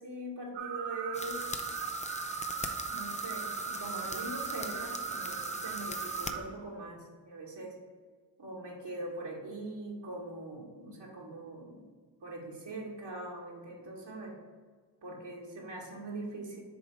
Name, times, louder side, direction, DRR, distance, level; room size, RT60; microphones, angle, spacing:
voice 1, 0.0-1.4 2.9-7.8 8.4-11.9 12.2-14.4 15.0-16.6, right 2 dB, 55° right, -2 dB, 2.0 m, -42 dB
sound 1, 0.5-6.4, right 8 dB, 90° right, 0.6 m, -38 dB
sound 2, 1.1-6.3, left 3 dB, 15° left, 0.6 m, -41 dB
7.1 x 3.5 x 4.9 m, 1.5 s
supercardioid pair, 45°, 49 cm